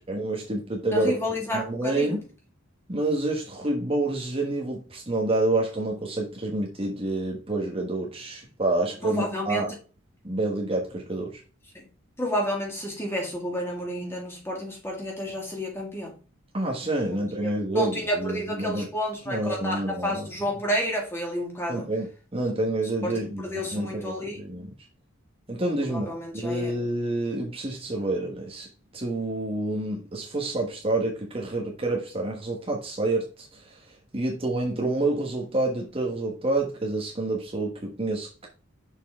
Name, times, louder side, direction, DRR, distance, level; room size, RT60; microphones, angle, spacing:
voice 1, 0.0-1.2 1.5-2.2 2.9-9.7 10.2-11.4 16.5-18.9 19.3-20.3 21.7-24.7 25.5-28.7 28.9-38.5, right 2 dB, 25° right, 1.2 m, -28 dB
voice 2, 0.9-2.2 9.0-9.6 11.7-11.9 12.2-16.2 17.4-17.5 17.8-21.9 23.0-24.4 25.9-26.7, equal, 10° left, 2.0 m, -30 dB
6.5 x 5.4 x 3.5 m
head